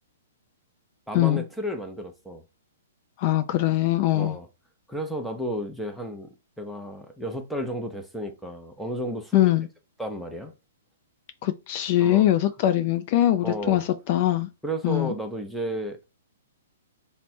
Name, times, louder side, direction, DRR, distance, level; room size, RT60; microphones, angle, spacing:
voice 1, 1.1-2.4 4.1-4.5 4.9-6.3 6.6-9.5 10.0-10.5 12.0-12.3 13.4-13.8 14.6-16.0, equal, ahead, 0.6 m, -32 dB
voice 2, 3.2-4.4 9.3-9.7 11.4-14.5 14.8-15.1, left 14 dB, 45° left, 0.4 m, -22 dB
3.4 x 2.1 x 4.2 m
hypercardioid pair, 135°, 0 cm